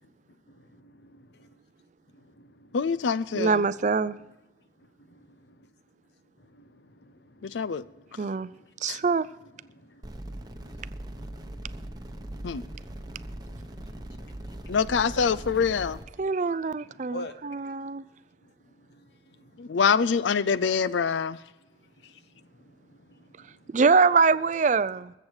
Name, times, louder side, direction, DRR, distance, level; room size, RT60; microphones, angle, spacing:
voice 1, 0.0-1.6 2.1-3.5 4.1-4.3 4.8-5.7 6.4-15.1 15.3-15.6 16.2-16.3 16.7-17.8 18.4-19.8 21.3-23.8, left 1 dB, 65° left, 1.0 m, -51 dB
voice 2, 2.7-3.6 7.4-7.9 8.9-9.0 12.4-12.6 14.7-16.0 19.6-21.4, left 6 dB, 85° left, 0.5 m, -25 dB
voice 3, 3.3-4.2 8.2-8.5 8.8-9.3 16.2-18.0 23.7-25.1, right 4 dB, 40° right, 0.4 m, -24 dB
sound 1, 10.0-16.0, right 1 dB, 20° right, 0.9 m, -40 dB
21.0 x 7.9 x 4.8 m
head